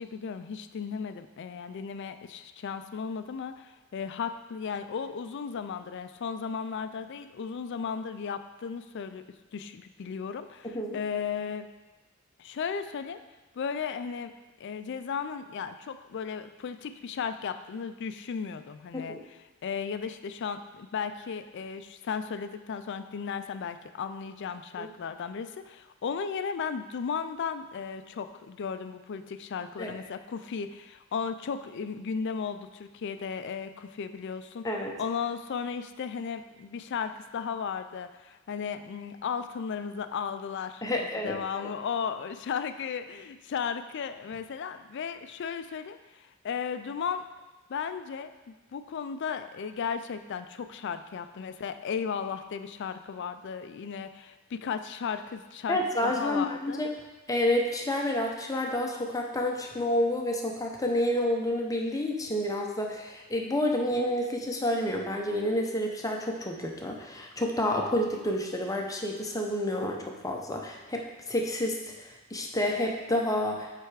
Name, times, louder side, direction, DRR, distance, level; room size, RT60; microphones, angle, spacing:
voice 1, 0.0-9.3 9.5-11.7 12.4-13.2 13.5-14.3 14.6-34.7 35.0-47.2 47.7-56.8, left 6 dB, 55° left, 10 dB, 0.4 m, -35 dB
voice 2, 10.6-11.0 18.9-19.2 24.8-24.9 29.8-29.9 34.6-34.9 40.8-41.7 55.7-56.9 57.3-73.7, left 1 dB, 15° left, 1 dB, 0.7 m, -29 dB
7.8 x 3.4 x 4.8 m, 1.1 s
head